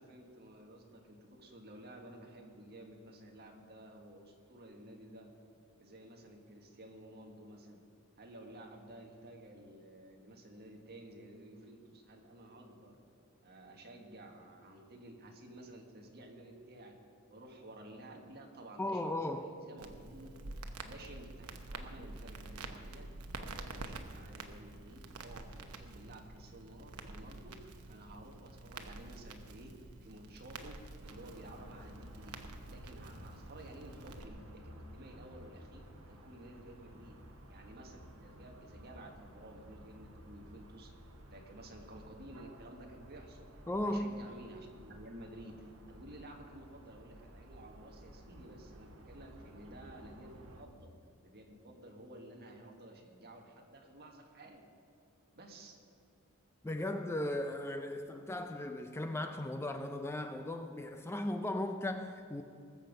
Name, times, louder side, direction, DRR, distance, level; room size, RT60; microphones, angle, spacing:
voice 1, 0.0-5.3 5.8-7.8 8.2-13.0 13.4-16.9 17.3-20.3 20.8-23.1 23.3-32.4 32.7-37.2 37.5-40.9 41.3-50.9 51.2-54.6 55.3-55.8, right 1 dB, 45° right, 2 dB, 1.6 m, -53 dB
voice 2, 18.8-19.5 43.7-44.3 56.6-62.4, left 1 dB, 10° left, 7 dB, 0.4 m, -37 dB
Crackle, 19.8-34.3, right 3 dB, 80° right, 0.9 m, -48 dB
sound 1, 31.0-50.6, equal, 65° right, 1.4 m, -54 dB
20.0 x 7.1 x 5.3 m, 2.5 s
head